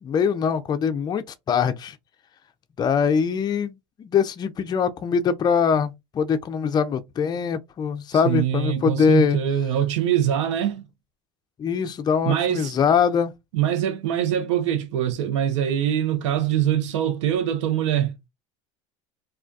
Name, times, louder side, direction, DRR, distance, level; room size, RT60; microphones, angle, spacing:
voice 1, 0.0-2.0 2.8-9.4 11.6-13.3, left 6 dB, 25° left, 0.4 m, -22 dB
voice 2, 8.2-10.9 12.2-12.9 13.5-18.1, right 10 dB, 85° right, 0.6 m, -23 dB
2.3 x 2.2 x 2.5 m
hypercardioid pair, 90°, 15 cm